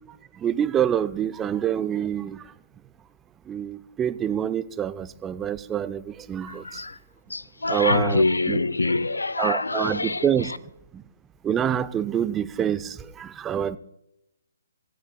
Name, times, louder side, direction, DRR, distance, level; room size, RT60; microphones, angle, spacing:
voice 1, 0.4-2.4 3.5-6.8 7.7-8.6 9.4-10.5 11.4-13.8, right 9 dB, 15° right, 0.5 m, -26 dB
voice 2, 6.5-7.0 7.3-10.6, left 2 dB, 80° left, 0.7 m, -25 dB
25.5 x 15.0 x 2.3 m
figure-of-eight pair, 135°, 0 cm